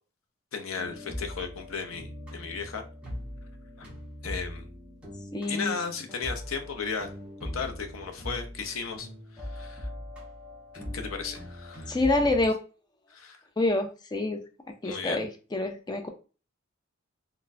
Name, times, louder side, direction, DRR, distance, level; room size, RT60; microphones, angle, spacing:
voice 1, 0.5-2.8 3.8-3.9 4.2-4.7 5.5-7.1 7.4-9.1 9.3-9.9 10.7-12.0 13.1-13.4 14.8-15.2, left 5 dB, 80° left, 5 dB, 0.6 m, -35 dB
sound 1, 0.8-12.4, left 1 dB, 5° right, 0.9 m, -41 dB
voice 2, 5.3-5.8 11.9-12.5 13.6-14.4 14.8-16.1, left 2 dB, 20° left, 5 dB, 0.4 m, -27 dB
4.0 x 2.1 x 2.6 m, 0.35 s
head